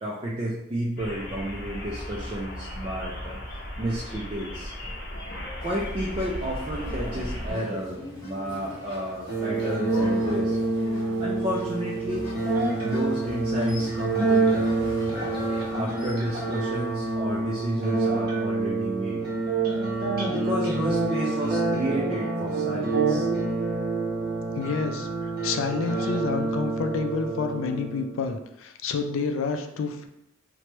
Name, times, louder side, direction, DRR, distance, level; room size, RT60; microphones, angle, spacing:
voice 1, 0.0-3.4 3.8-4.7 5.6-10.6 11.2-12.3 12.8-14.8 15.7-19.3 20.3-23.4, right 1 dB, 25° right, -5 dB, 0.3 m, -31 dB
sound 1, 1.0-7.5, left 1 dB, 50° left, 0.7 m, -36 dB
sound 2, 5.6-17.7, left 1 dB, 15° left, 0.9 m, -41 dB
sound 3, 9.3-28.2, right 3 dB, 50° right, 0.7 m, -27 dB
voice 2, 24.5-30.1, left 4 dB, 70° left, 5 dB, 0.3 m, -29 dB
3.0 x 2.1 x 2.9 m, 0.82 s
head